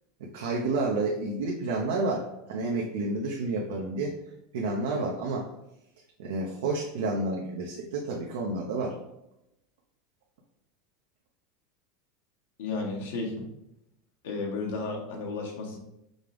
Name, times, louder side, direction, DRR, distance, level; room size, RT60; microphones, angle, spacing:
voice 1, 0.3-4.1 4.5-5.5 6.2-8.9, right 3 dB, 85° right, -1 dB, 0.7 m, -30 dB
voice 2, 12.6-13.5 14.2-15.8, left 3 dB, 90° left, 0 dB, 1.1 m, -33 dB
5.2 x 2.5 x 3.2 m, 0.84 s
supercardioid pair, 135°, 0 cm